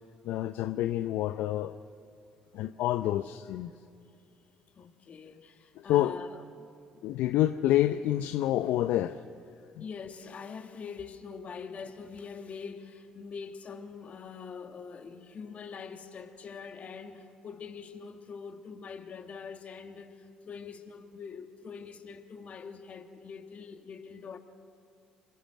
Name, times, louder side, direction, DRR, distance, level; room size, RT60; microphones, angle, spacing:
voice 1, 0.2-1.8 2.5-3.7 5.8-6.2 7.0-9.2, left 13 dB, 70° left, 0.6 m, -28 dB
voice 2, 4.7-7.2 9.8-24.4, left 5 dB, 50° left, 2.3 m, -44 dB
26.5 x 23.0 x 7.6 m
hypercardioid pair, 50°, 3 cm